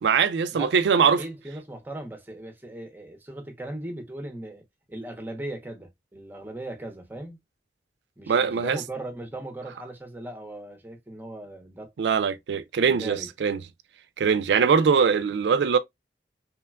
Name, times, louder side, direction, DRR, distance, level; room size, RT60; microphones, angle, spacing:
voice 1, 0.0-1.2 8.3-8.8 12.0-13.6 14.2-15.8, right 6 dB, 80° right, 0.3 m, -22 dB
voice 2, 0.5-7.4 8.2-11.9 12.8-13.3, right 1 dB, 10° right, 0.6 m, -38 dB
3.0 x 2.2 x 2.2 m
head